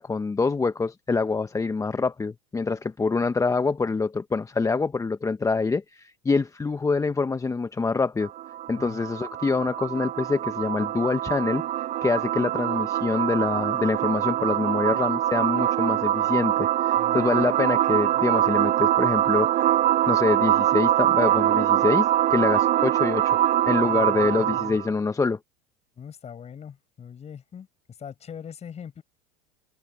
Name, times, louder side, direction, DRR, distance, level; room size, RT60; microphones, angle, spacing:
voice 1, 0.0-8.3 8.7-19.7 20.1-23.4 23.7-25.4, left 4 dB, 15° left, 1.2 m, -25 dB
sound 1, 8.2-24.9, right 12 dB, 40° right, 0.8 m, -23 dB
voice 2, 16.9-17.4 23.8-24.8 26.0-29.0, left 8 dB, 30° left, 6.8 m, -41 dB
hypercardioid pair, 90°, 21 cm